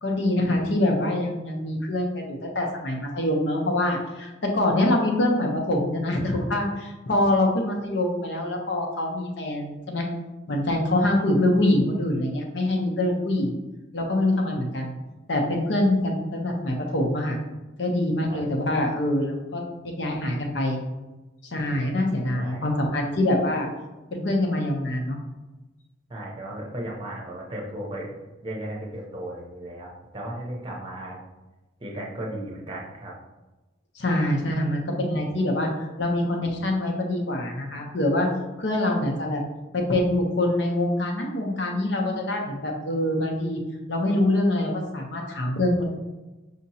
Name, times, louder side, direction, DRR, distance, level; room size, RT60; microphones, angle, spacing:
voice 1, 0.0-10.0 10.5-13.6 13.9-14.9 15.3-17.4 17.8-20.8 21.5-23.7 24.1-25.2 34.0-35.7 36.0-38.3 38.6-39.4 39.7-43.6 43.9-45.8, left 1 dB, 65° left, 1 dB, 0.7 m, -24 dB
voice 2, 26.1-31.2 31.8-33.1, right 1 dB, 25° right, -2 dB, 0.7 m, -35 dB
5.1 x 2.9 x 2.8 m, 1.1 s
head